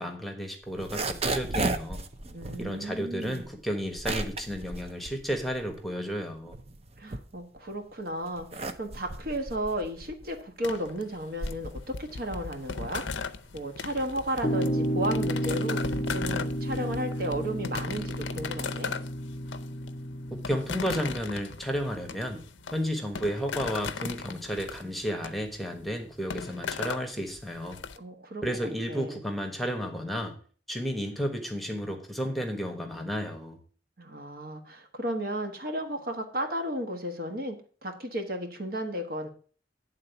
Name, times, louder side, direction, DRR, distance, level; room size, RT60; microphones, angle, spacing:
voice 1, 0.0-2.0 2.6-6.5 20.3-22.4 22.7-27.8 28.4-30.3 30.7-33.6, equal, ahead, 3 dB, 1.2 m, -32 dB
sound 1, 0.6-5.9 6.3-7.7 8.2-17.0, right 2 dB, 35° right, 0.7 m, -36 dB
voice 2, 2.3-3.5 7.0-18.9 27.9-28.4 28.9-29.2 34.0-39.3, right 1 dB, 55° right, 5 dB, 1.4 m, -34 dB
sound 2, 10.6-28.0, left 5 dB, 85° left, 0.6 m, -38 dB
sound 3, 14.4-20.8, equal, 30° left, 0.7 m, -31 dB
9.7 x 3.9 x 6.9 m, 0.42 s
head